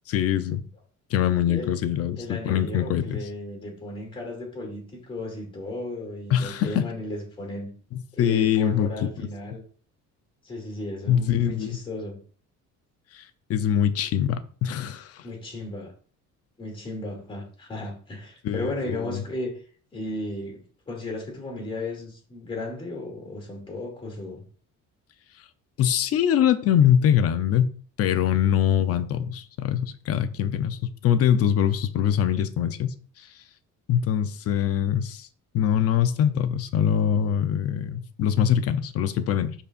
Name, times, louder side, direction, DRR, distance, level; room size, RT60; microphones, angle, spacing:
voice 1, 0.1-0.6 1.1-3.2 6.3-6.9 8.2-9.3 11.1-11.8 13.1-13.2 13.5-15.2 18.4-19.2 25.8-27.7 28.0-32.9 33.9-35.3 35.5-39.5, left 9 dB, 50° left, 0.7 m, -23 dB
voice 2, 2.2-7.7 8.1-9.6 10.4-12.2 15.2-15.9 16.6-19.6 19.9-24.4, left 1 dB, 15° left, 2.6 m, -35 dB
12.5 x 4.2 x 2.5 m
cardioid pair, 160°, 31 cm